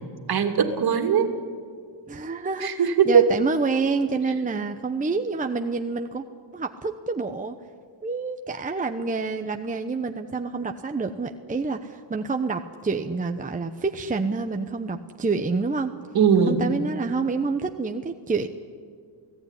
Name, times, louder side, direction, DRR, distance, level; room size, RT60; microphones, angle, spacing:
voice 1, 0.3-1.3 2.6-3.3 16.1-16.6, right 7 dB, 50° right, 6 dB, 2.7 m, -19 dB
voice 2, 2.1-6.2 6.5-7.5 8.0-15.9 16.5-18.5, right 4 dB, 15° right, 5 dB, 0.9 m, -28 dB
29.0 x 17.5 x 10.0 m, 2.2 s
cardioid pair, 135°, 48 cm